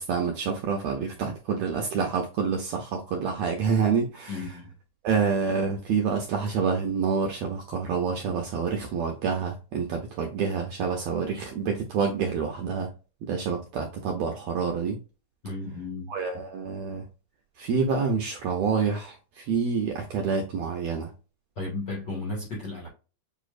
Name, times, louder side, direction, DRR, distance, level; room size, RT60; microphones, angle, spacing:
voice 1, 0.0-4.3 5.0-12.9 13.3-15.0 16.1-17.0 17.6-21.1, right 5 dB, 75° right, 1.6 m, -27 dB
voice 2, 4.3-4.7 15.4-16.1 21.6-22.9, left 2 dB, 45° left, 1.7 m, -34 dB
6.9 x 3.1 x 2.4 m
omnidirectional pair, 3.8 m